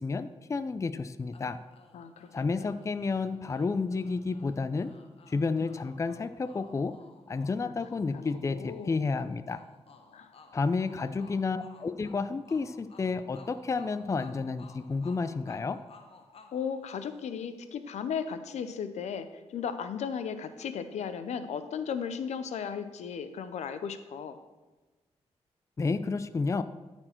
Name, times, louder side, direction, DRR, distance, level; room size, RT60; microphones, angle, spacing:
voice 1, 0.0-1.6 2.3-4.9 5.3-7.0 7.3-9.6 10.5-15.8 25.8-26.6, left 4 dB, 25° left, 12 dB, 0.4 m, -31 dB
sound 1, 1.3-17.5, left 4 dB, 60° left, 0.9 m, -57 dB
voice 2, 1.9-2.3 2.6-2.7 5.6-5.8 7.7-7.8 8.1-9.0 10.1-10.3 11.0-11.5 16.5-24.4, left 7 dB, 85° left, 11 dB, 0.6 m, -36 dB
13.0 x 4.4 x 4.4 m, 1.2 s
cardioid pair, 70°, 11 cm